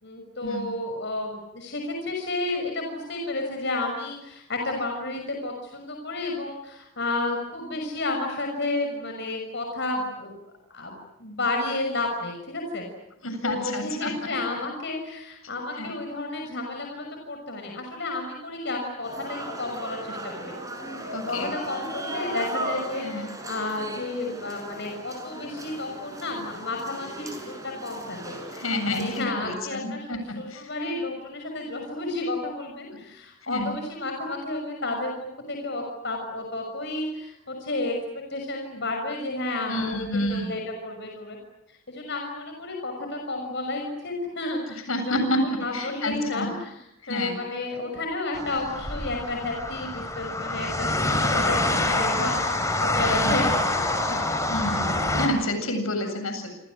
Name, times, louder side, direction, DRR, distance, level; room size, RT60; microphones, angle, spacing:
voice 1, 0.0-10.3 10.7-12.9 13.4-20.5 21.3-35.1 35.5-41.4 41.7-45.1 45.4-54.2, left 2 dB, 55° left, 3 dB, 6.0 m, -31 dB
voice 2, 13.2-14.1 15.8-15.9 21.1-21.5 23.0-23.3 28.6-30.2 30.5-30.6 33.5-33.7 39.7-40.5 44.9-46.5 47.0-47.3 53.2-53.4 54.5-54.9 55.2-56.5, left 1 dB, 80° left, 7 dB, 7.9 m, -29 dB
sound 1, 19.0-29.3, right 1 dB, 15° right, 6.5 m, -37 dB
sound 2, 48.3-55.3, left 2 dB, 15° left, 4.5 m, -26 dB
28.5 x 28.0 x 6.4 m, 0.87 s
head